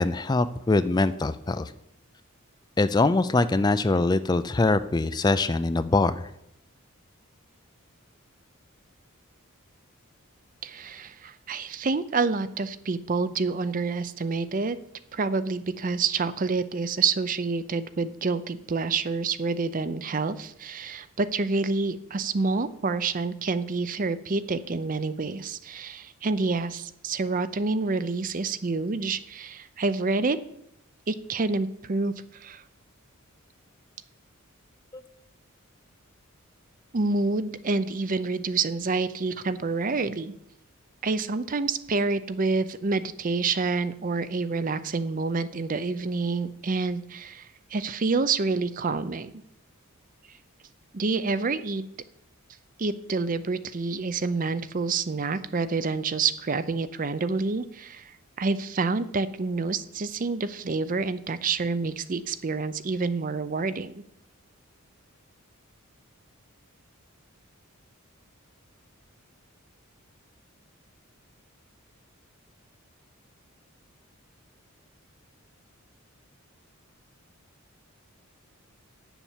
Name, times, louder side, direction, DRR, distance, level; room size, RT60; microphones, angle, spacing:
voice 1, 0.0-1.7 2.8-6.3 34.9-35.0, left 3 dB, 20° left, 13 dB, 0.3 m, -23 dB
voice 2, 10.6-14.8 15.1-30.4 31.1-32.6 36.9-40.3 41.0-49.3 50.9-51.9 52.8-63.9, right 4 dB, 40° right, 14 dB, 0.5 m, -28 dB
9.4 x 7.1 x 7.3 m, 0.78 s
head